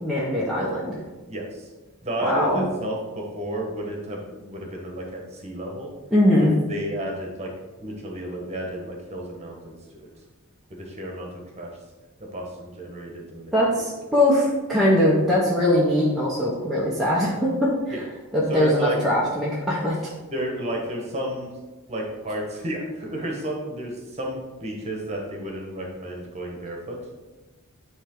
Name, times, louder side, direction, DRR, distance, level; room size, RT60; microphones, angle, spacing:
voice 1, 0.0-1.0 2.2-2.7 6.1-6.5 13.5-18.0 18.3-20.0, left 1 dB, ahead, -8 dB, 1.0 m, -21 dB
voice 2, 1.3-1.7 2.0-5.9 6.7-7.5 7.8-10.1 10.7-11.3 11.6-11.7 12.3-13.5 17.9-18.0 18.5-19.0 20.3-21.5 21.9-27.0, right 1 dB, 30° right, 0 dB, 1.4 m, -32 dB
9.7 x 3.3 x 3.8 m, 1.2 s
head